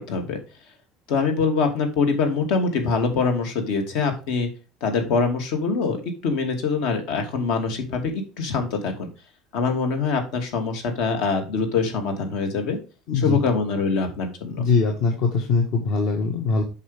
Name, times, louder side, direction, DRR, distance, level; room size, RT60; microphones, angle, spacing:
voice 1, 0.1-0.4 1.1-4.5 4.8-9.1 9.5-12.8 13.1-14.7, left 4 dB, 70° left, 5 dB, 2.6 m, -24 dB
voice 2, 13.1-13.4 14.4-16.6, left 4 dB, 55° left, 2 dB, 1.6 m, -22 dB
8.4 x 5.7 x 3.5 m, 0.33 s
cardioid pair, 165°, 0 cm